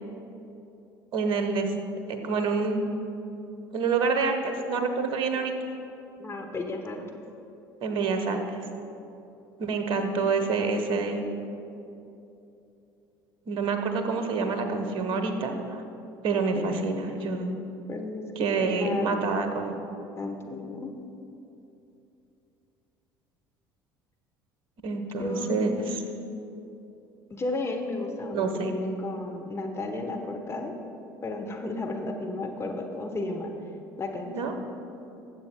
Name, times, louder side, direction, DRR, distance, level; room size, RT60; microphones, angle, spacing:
voice 1, 1.1-1.7 2.1-2.9 3.7-5.5 7.8-8.6 9.6-11.2 13.5-15.8 16.2-17.5 18.4-19.8 24.8-26.0 28.3-28.7 34.3-34.6, right 4 dB, 50° right, 6 dB, 1.1 m, -27 dB
voice 2, 6.2-7.0 16.6-16.7 17.9-18.2 18.6-19.1 20.2-20.9 25.2-25.9 27.3-30.7 31.2-33.5 34.0-34.6, left 2 dB, 25° left, 2 dB, 1.0 m, -33 dB
20.0 x 7.5 x 2.2 m, 2.8 s
figure-of-eight pair, 60°, 11 cm